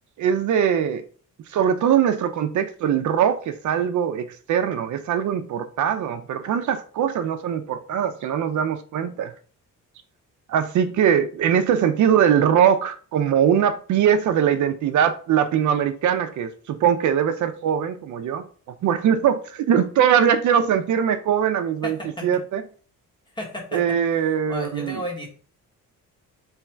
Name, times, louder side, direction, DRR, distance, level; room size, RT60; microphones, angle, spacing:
voice 1, 0.2-1.0 1.5-9.3 10.5-18.5 18.8-22.0 22.2-22.6 23.7-25.0, right 8 dB, 65° right, 0.5 m, -21 dB
voice 2, 21.8-22.3 23.3-23.8 24.5-25.3, left 1 dB, 15° left, 1.1 m, -32 dB
3.5 x 3.1 x 4.4 m
cardioid pair, 160°, 32 cm